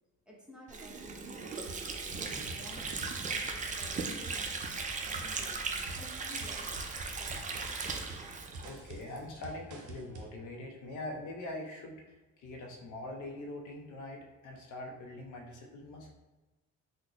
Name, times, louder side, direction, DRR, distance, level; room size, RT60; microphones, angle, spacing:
voice 1, 0.3-7.8, left 1 dB, 5° right, -4 dB, 0.9 m, -54 dB
Water / Sink (filling or washing), 0.7-9.2, right 4 dB, 25° right, 0.4 m, -37 dB
sound 1, 1.7-10.4, right 2 dB, 75° right, 0.6 m, -48 dB
voice 2, 8.6-16.1, left 1 dB, 75° left, 1 dB, 0.6 m, -43 dB
3.7 x 2.2 x 2.9 m, 1.1 s
cardioid pair, 90°, 30 cm